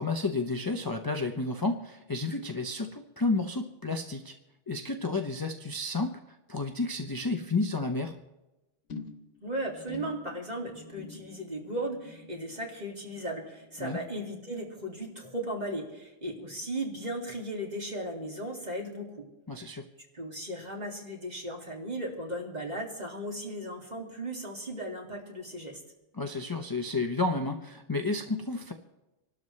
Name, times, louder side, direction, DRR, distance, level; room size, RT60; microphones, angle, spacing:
voice 1, 0.0-4.3 4.7-6.2 6.5-8.1 13.8-14.0 19.5-19.8 26.2-28.7, left 3 dB, 25° left, 4 dB, 0.6 m, -31 dB
sound 1, 8.9-15.5 15.7-16.2 16.5-16.6, left 3 dB, 75° left, 1.5 m, -48 dB
voice 2, 9.4-19.1 20.1-25.8, right 1 dB, 35° right, -1 dB, 2.5 m, -36 dB
26.5 x 12.5 x 3.2 m, 0.99 s
omnidirectional pair, 1.3 m